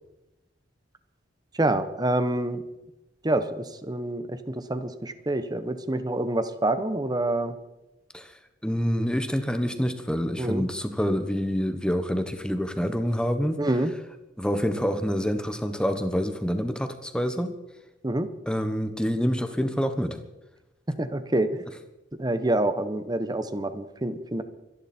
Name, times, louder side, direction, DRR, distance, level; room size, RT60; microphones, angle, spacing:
voice 1, 1.6-2.6 3.2-7.5 10.4-10.7 13.6-13.9 18.0-18.3 20.9-21.6 22.2-24.4, right 1 dB, 20° right, 11 dB, 1.1 m, -27 dB
voice 2, 8.6-13.6 14.4-17.5 18.5-20.2, equal, 5° left, 8 dB, 1.2 m, -27 dB
25.0 x 11.0 x 4.4 m, 0.96 s
head